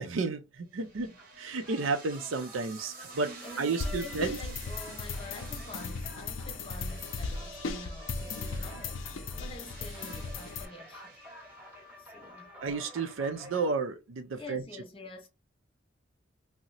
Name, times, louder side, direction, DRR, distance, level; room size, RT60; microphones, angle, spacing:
voice 1, 0.0-4.4 12.6-14.6, right 4 dB, 85° right, 0.5 m, -32 dB
voice 2, 0.8-1.2 3.2-11.6 12.0-12.6 14.4-15.3, left 2 dB, 25° left, 0.6 m, -47 dB
sound 1, 0.8-12.0, right 4 dB, 45° right, 0.8 m, -50 dB
sound 2, 1.2-13.7, left 1 dB, 10° right, 0.8 m, -51 dB
sound 3, 3.8-10.6, left 4 dB, 80° left, 0.5 m, -37 dB
2.8 x 2.0 x 3.8 m
head